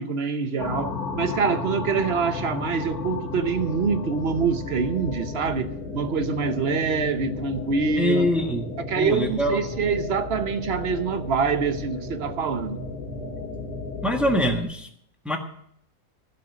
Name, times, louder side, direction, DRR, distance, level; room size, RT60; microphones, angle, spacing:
voice 1, 0.0-8.3 8.9-12.8, right 5 dB, 50° right, 1.0 m, -25 dB
sound 1, 0.6-14.6, left 4 dB, 80° left, 2.3 m, -34 dB
voice 2, 8.0-8.7 9.0-9.6 14.0-14.9 15.2-15.4, equal, ahead, 1.3 m, -23 dB
16.0 x 5.7 x 7.8 m
omnidirectional pair, 1.5 m